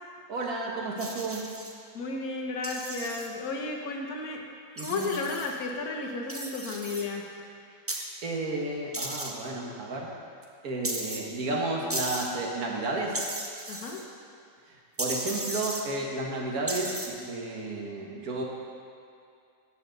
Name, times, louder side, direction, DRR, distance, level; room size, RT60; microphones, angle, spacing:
voice 1, 0.3-1.4 4.8-5.2 8.2-10.1 10.6-13.2 15.0-18.4, right 2 dB, 85° right, -1 dB, 1.8 m, -32 dB
sound 1, 1.0-1.7 2.6-3.3 4.8-5.5 6.3-7.0 7.9-8.0 8.9-9.3 10.8-11.2 11.9-12.3 13.1-14.0 15.0-15.8 16.7-17.1, right 1 dB, 20° right, 0.4 m, -35 dB
voice 2, 1.9-4.4 4.8-7.2 13.7-14.0, left 3 dB, 85° left, 1 dB, 1.6 m, -33 dB
13.5 x 7.1 x 3.9 m, 2.3 s
omnidirectional pair, 1.5 m